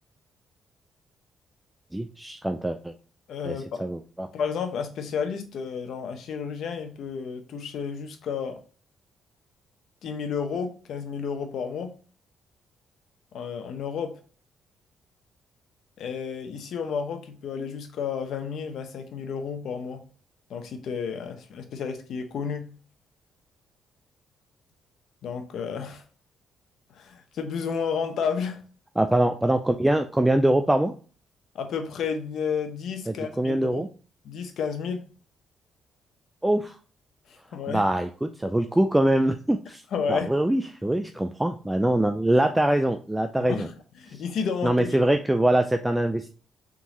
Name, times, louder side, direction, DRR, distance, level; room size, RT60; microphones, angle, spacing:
voice 1, 1.9-2.9 3.4-4.3 29.0-30.9 33.1-33.9 36.4-36.8 37.7-39.8 40.1-43.7 44.1-44.2 44.6-46.3, right 1 dB, 10° right, 0.4 m, -23 dB
voice 2, 3.3-3.9 4.3-8.6 10.0-11.9 13.3-14.2 16.0-20.0 20.5-22.7 25.2-26.0 27.0-28.6 31.5-33.8 34.2-35.1 37.5-37.8 39.9-40.3 43.5-43.7 44.0-45.0, left 6 dB, 70° left, 0.8 m, -31 dB
3.7 x 3.7 x 3.0 m
cardioid pair, 90°, 0 cm